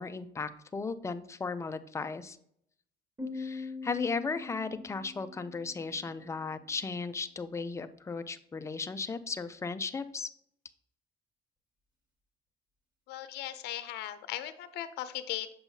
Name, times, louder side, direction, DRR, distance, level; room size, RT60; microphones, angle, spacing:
voice 1, 0.0-2.4 3.3-10.3, left 4 dB, 15° left, 10 dB, 0.4 m, -36 dB
Piano, 3.2-6.6, left 4 dB, 20° right, 2.1 m, -43 dB
voice 2, 13.1-15.5, left 12 dB, 80° left, 11 dB, 0.5 m, -38 dB
7.0 x 5.5 x 2.7 m, 0.70 s
cardioid pair, 110°, 17 cm